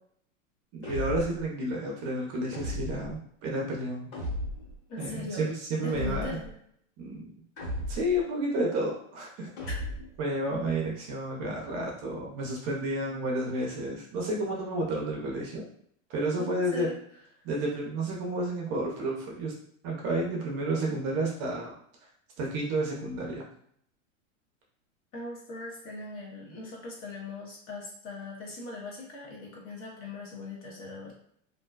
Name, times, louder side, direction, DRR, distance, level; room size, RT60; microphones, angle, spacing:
voice 1, 0.7-4.1 5.0-6.4 7.0-7.3 7.9-9.5 10.2-15.6 16.1-16.9 17.4-19.5 19.8-21.7 22.4-23.4, right 1 dB, 40° right, -2 dB, 0.7 m, -31 dB
sound 1, 0.8-1.5 2.5-3.2 4.1-4.8 5.9-6.5 7.6-8.2 9.6-10.2, left 1 dB, 80° left, 1.3 m, -35 dB
voice 2, 4.9-5.5 5.8-6.5 9.7-9.8 16.4-17.0 25.1-31.1, left 2 dB, 35° left, -2 dB, 0.8 m, -39 dB
2.6 x 2.1 x 2.3 m, 0.66 s
hypercardioid pair, 130°, 40 cm